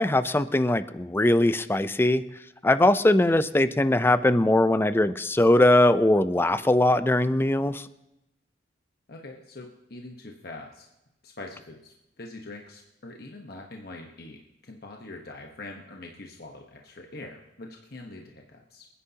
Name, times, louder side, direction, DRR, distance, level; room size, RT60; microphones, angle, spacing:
voice 1, 0.0-2.2 2.6-7.9, left 1 dB, 15° left, 13 dB, 0.4 m, -21 dB
voice 2, 9.1-10.9 11.2-18.9, left 2 dB, 60° left, 1 dB, 1.1 m, -43 dB
27.0 x 9.9 x 2.9 m, 0.90 s
head